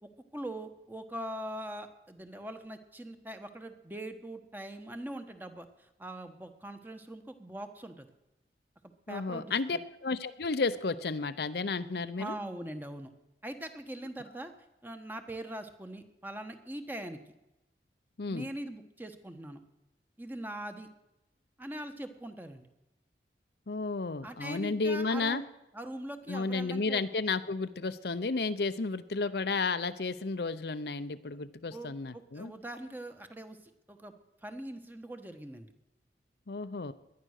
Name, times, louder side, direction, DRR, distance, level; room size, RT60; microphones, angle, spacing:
voice 1, 0.0-8.1 9.1-9.5 12.2-13.1 13.4-14.5 14.8-17.2 18.3-19.6 20.2-20.9 21.6-22.7 24.2-25.4 25.7-27.0 31.5-33.6 33.9-34.1 34.4-35.7, right 1 dB, 10° right, 7 dB, 1.1 m, -42 dB
voice 2, 9.1-12.3 18.2-18.5 23.7-25.4 26.3-32.5 36.5-36.9, left 4 dB, 65° left, 12 dB, 0.7 m, -32 dB
19.0 x 11.0 x 6.5 m, 0.95 s
head